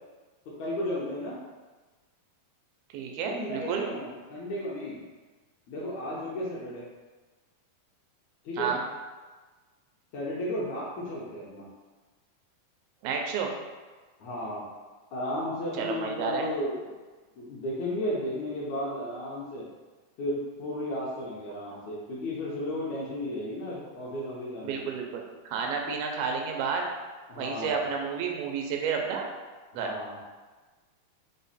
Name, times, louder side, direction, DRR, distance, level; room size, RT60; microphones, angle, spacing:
voice 1, 0.6-1.4 3.2-5.0 5.7-6.8 8.4-8.7 10.1-11.7 14.2-14.6 15.1-16.8 17.3-19.6 20.2-24.9 27.3-27.9 29.7-30.2, left 1 dB, 80° left, -6 dB, 1.6 m, -34 dB
voice 2, 2.9-3.9 8.6-8.8 13.0-13.5 15.8-16.5 24.6-26.9 27.4-29.3 29.7-29.9, right 6 dB, 90° right, 1 dB, 2.5 m, -31 dB
6.0 x 2.1 x 4.0 m, 1.3 s
omnidirectional pair, 4.2 m